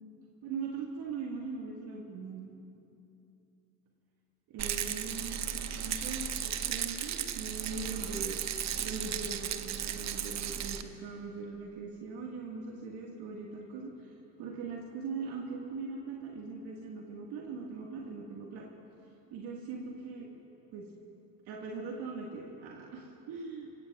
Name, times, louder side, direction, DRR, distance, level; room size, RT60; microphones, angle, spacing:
voice 1, 0.4-2.5 4.5-8.4 8.8-18.7 19.3-20.3 20.7-20.9 21.5-23.7, right 4 dB, 50° right, -1 dB, 1.9 m, -41 dB
Rattle, 4.6-10.8, right 9 dB, 35° right, 0.9 m, -35 dB
25.5 x 17.0 x 2.5 m, 2.9 s
hypercardioid pair, 75°, 49 cm